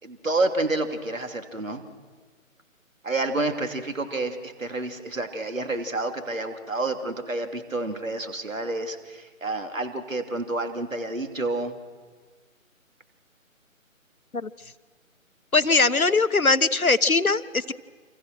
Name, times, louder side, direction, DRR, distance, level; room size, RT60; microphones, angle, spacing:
voice 1, 0.0-1.8 3.0-11.7, right 2 dB, 70° right, 6 dB, 3.2 m, -29 dB
voice 2, 15.5-17.7, left 3 dB, 85° left, 13 dB, 1.2 m, -21 dB
29.0 x 27.0 x 6.2 m, 1.5 s
figure-of-eight pair, 150°, 41 cm